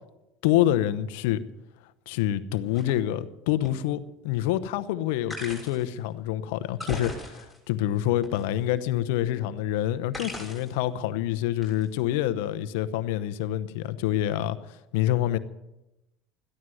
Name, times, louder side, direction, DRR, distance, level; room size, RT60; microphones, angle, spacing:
voice 1, 0.4-1.4 2.1-15.4, left 13 dB, 75° left, 13 dB, 0.9 m, -27 dB
sound 1, 2.7-2.9 3.7-3.8 5.3-5.9 6.7-7.7 8.2-8.9 10.1-10.8 11.6-11.9, left 1 dB, ahead, 6.5 m, -38 dB
14.5 x 11.0 x 7.8 m, 0.94 s
supercardioid pair, 100°, 0 cm